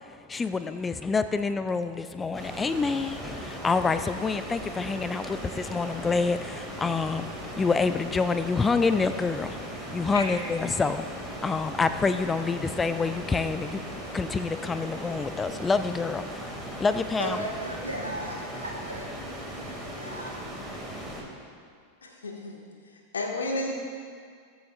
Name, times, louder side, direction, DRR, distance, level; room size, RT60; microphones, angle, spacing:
voice 1, 0.0-17.4, left 4 dB, 15° left, 11 dB, 0.4 m, -27 dB
sound 1, 2.3-21.2, right 1 dB, ahead, 2.3 m, -38 dB
voice 2, 17.2-20.3, right 1 dB, 90° right, -4 dB, 2.0 m, -36 dB
voice 3, 22.0-23.7, left 2 dB, 70° left, 0 dB, 1.8 m, -33 dB
21.5 x 8.1 x 2.5 m, 2.1 s
figure-of-eight pair, 90°, 0 cm